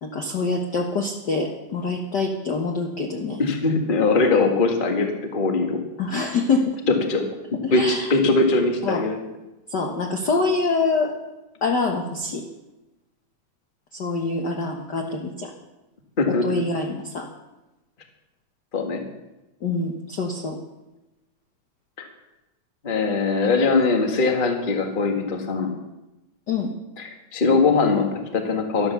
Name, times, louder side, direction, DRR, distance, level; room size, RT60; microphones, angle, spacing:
voice 1, 0.0-3.4 6.0-6.7 7.6-8.1 8.8-9.0 9.7-11.1 11.6-12.4 13.9-15.5 16.3-17.3 19.6-20.6 26.5-26.7, left 3 dB, 50° left, 2 dB, 1.3 m, -25 dB
voice 2, 3.4-5.8 6.9-7.2 7.5-9.2 16.2-16.5 18.7-19.0 22.0-22.1 22.8-25.7 27.0-28.9, left 3 dB, 25° left, 4 dB, 1.2 m, -21 dB
12.5 x 12.0 x 6.8 m, 1.0 s
omnidirectional pair, 3.3 m